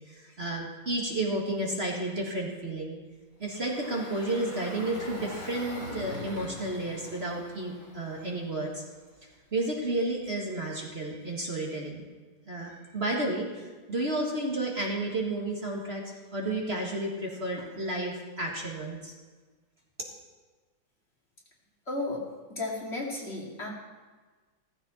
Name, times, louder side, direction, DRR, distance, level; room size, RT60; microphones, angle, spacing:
voice 1, 0.0-3.0 3.4-8.8 9.5-12.0 12.5-16.0 16.3-19.1, right 2 dB, 35° right, -2 dB, 2.0 m, -32 dB
Engine, 3.4-8.7, left 1 dB, 75° left, 5.9 m, -42 dB
voice 2, 21.9-22.2 22.5-23.7, left 2 dB, 35° left, -2 dB, 2.5 m, -33 dB
15.5 x 15.0 x 4.3 m, 1.3 s
omnidirectional pair, 2.0 m